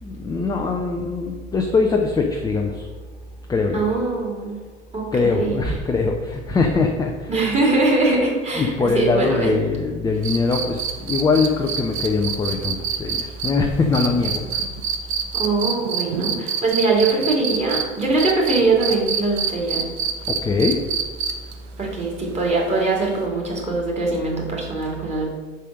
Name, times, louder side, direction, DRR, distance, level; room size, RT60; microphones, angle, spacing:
voice 1, 0.0-2.9 3.5-3.9 5.1-7.3 8.5-14.7 20.3-20.8, left 4 dB, 10° left, 2 dB, 0.5 m, -22 dB
voice 2, 3.7-4.6 4.9-5.6 7.3-9.5 15.3-19.9 21.8-25.3, right 3 dB, 15° right, -3 dB, 2.3 m, -22 dB
sound 1, 10.2-17.8 18.2-21.5 23.2-23.3, right 7 dB, 55° right, 0.9 m, -25 dB
5.4 x 5.0 x 6.4 m, 1.4 s
figure-of-eight pair, 75°, 38 cm